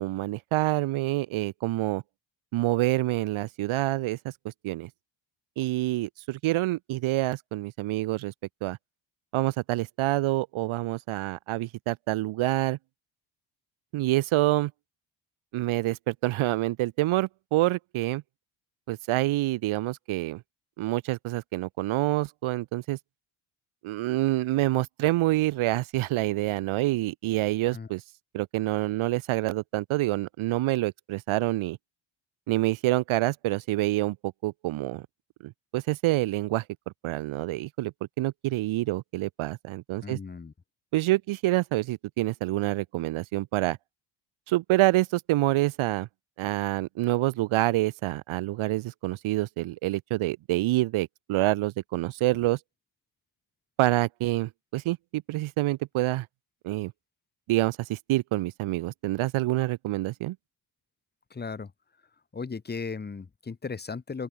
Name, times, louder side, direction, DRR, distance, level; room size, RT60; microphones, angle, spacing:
voice 1, 0.0-2.0 2.5-4.9 5.6-8.3 8.6-8.8 9.3-12.8 13.9-14.7 15.5-18.2 18.9-20.4 20.8-23.0 23.8-28.0 28.3-31.8 32.5-35.0 35.4-36.6 37.0-40.2 40.9-43.8 44.5-46.1 46.4-52.6 53.8-56.3 56.6-56.9 57.5-60.4, right 17 dB, 75° right, 1.4 m, -27 dB
voice 2, 40.0-40.5 61.3-61.7 62.3-64.3, left 5 dB, 20° left, 3.2 m, -36 dB
open air
cardioid pair, 155°, 48 cm